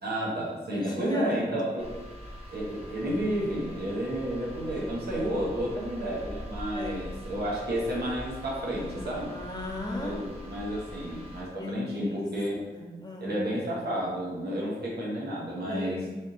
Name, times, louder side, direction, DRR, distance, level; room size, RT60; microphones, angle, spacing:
voice 1, 0.0-1.9 2.5-9.3 9.9-12.5 13.2-16.0, right 1 dB, 90° right, -4 dB, 1.0 m, -31 dB
voice 2, 0.7-1.5 6.7-7.0 8.8-10.2 11.6-12.3 12.7-13.3 15.7-16.2, left 2 dB, 25° left, -1 dB, 0.9 m, -36 dB
sound 1, 1.8-11.4, equal, 40° right, 1.0 m, -43 dB
3.5 x 2.7 x 3.7 m, 1.2 s
cardioid pair, 45°, 16 cm